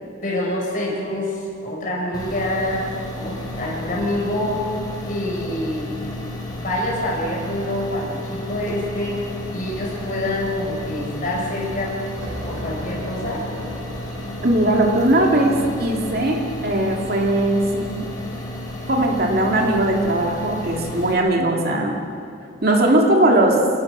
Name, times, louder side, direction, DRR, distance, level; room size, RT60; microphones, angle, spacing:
voice 1, 0.2-2.9 3.1-4.6 5.1-5.9 6.5-12.0 12.4-13.5, left 1 dB, 40° left, -2 dB, 6.1 m, -26 dB
sound 1, 2.1-21.1, left 1 dB, 20° left, 3.8 m, -32 dB
sound 2, 11.7-18.1, right 1 dB, 85° right, 3.2 m, -39 dB
voice 2, 14.4-18.1 18.9-22.0 22.6-23.7, right 1 dB, 50° right, 0 dB, 2.6 m, -19 dB
27.5 x 18.0 x 6.4 m, 2.5 s
head